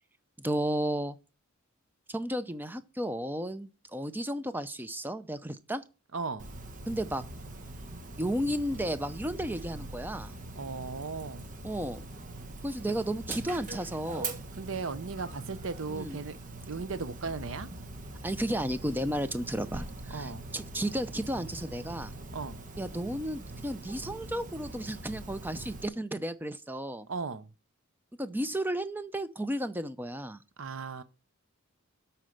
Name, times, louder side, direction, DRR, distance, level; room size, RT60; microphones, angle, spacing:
voice 1, 0.4-1.2 2.1-5.8 6.9-7.2 8.2-10.3 11.6-12.1 12.6-14.3 15.9-16.2 18.2-22.1 22.8-27.1 28.2-30.4, right 1 dB, 10° right, 0.5 m, -33 dB
voice 2, 6.1-6.5 10.5-11.5 14.5-16.4 16.7-17.7 20.1-20.5 22.3-22.6 27.1-27.5 30.6-31.0, right 4 dB, 60° right, 0.6 m, -36 dB
Dog, 6.4-25.9, right 2 dB, 35° right, 1.1 m, -42 dB
12.5 x 4.5 x 6.5 m
head